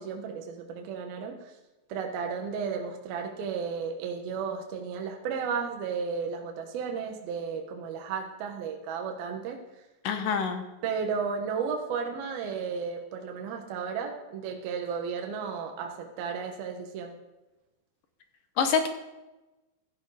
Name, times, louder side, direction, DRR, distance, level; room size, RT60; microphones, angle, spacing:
voice 1, 0.0-1.5 1.9-9.6 10.8-17.1, right 6 dB, 70° right, 3 dB, 3.1 m, -33 dB
voice 2, 10.0-10.6 18.6-18.9, left 6 dB, 70° left, 7 dB, 2.3 m, -26 dB
16.0 x 14.0 x 5.0 m, 1.1 s
omnidirectional pair, 4.8 m